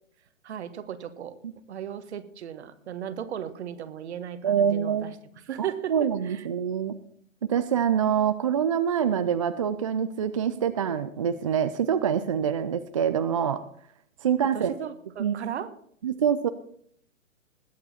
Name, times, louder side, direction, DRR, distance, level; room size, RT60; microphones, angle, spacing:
voice 1, 0.4-1.3 1.7-5.1 5.5-6.5 14.5-15.7, right 9 dB, 55° right, 11 dB, 1.5 m, -36 dB
voice 2, 4.4-5.1 5.6-6.9 7.4-13.6 14.2-14.7 15.2-15.4 16.0-16.5, right 8 dB, 25° right, 11 dB, 0.4 m, -25 dB
20.0 x 8.3 x 4.2 m, 0.64 s
figure-of-eight pair, 130°, 39 cm